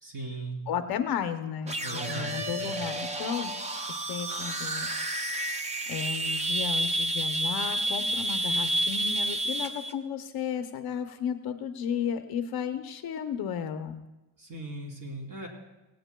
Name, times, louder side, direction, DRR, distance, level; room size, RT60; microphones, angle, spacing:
voice 1, 0.0-0.6 1.8-2.7 14.4-15.5, right 2 dB, 40° right, 0 dB, 3.2 m, -38 dB
voice 2, 0.7-1.8 2.1-3.5 3.9-4.9 5.9-14.0, left 8 dB, 50° left, 7 dB, 0.7 m, -33 dB
sound 1, 1.6-9.9, right 1 dB, 15° right, 0.3 m, -30 dB
18.0 x 17.5 x 2.2 m, 1.1 s
cardioid pair, 170°, 50 cm